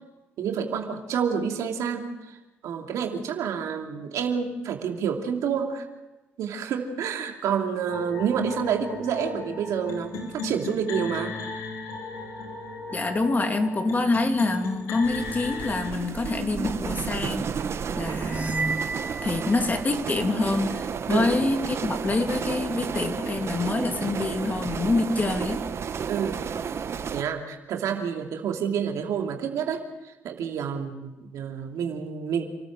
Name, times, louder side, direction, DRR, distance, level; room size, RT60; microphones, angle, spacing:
voice 1, 0.4-2.4 2.6-5.9 6.4-11.3 21.1-21.3 26.1-26.4 27.1-32.5, right 7 dB, 75° right, 3 dB, 2.7 m, -28 dB
sound 1, 7.9-15.9, left 3 dB, 85° left, 3.3 m, -36 dB
voice 2, 12.9-17.5 18.0-18.9 19.2-25.6, left 3 dB, 30° left, 5 dB, 2.9 m, -26 dB
sound 2, 15.0-27.2, right 6 dB, 55° right, 1.1 m, -32 dB
sound 3, 18.3-20.1, right 4 dB, 30° right, 2.0 m, -33 dB
28.5 x 13.5 x 7.6 m, 1.1 s
supercardioid pair, 65°, 5 cm